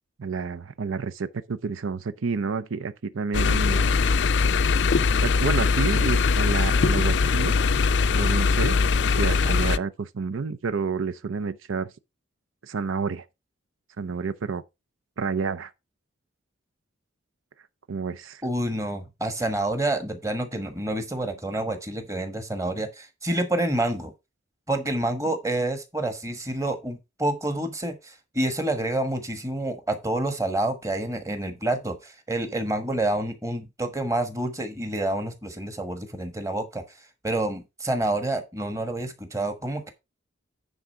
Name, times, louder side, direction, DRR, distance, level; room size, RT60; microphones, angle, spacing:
voice 1, 0.2-4.0 5.2-7.6 8.1-8.8 9.1-11.9 12.6-13.2 14.0-14.6 15.2-15.7 17.9-18.4, right 4 dB, 90° right, 0.6 m, -29 dB
sound 1, 3.3-9.8, left 4 dB, 60° left, 0.4 m, -21 dB
voice 2, 18.4-24.1 24.7-36.8 37.2-39.9, right 1 dB, 15° right, 1.3 m, -28 dB
9.7 x 3.8 x 5.6 m
head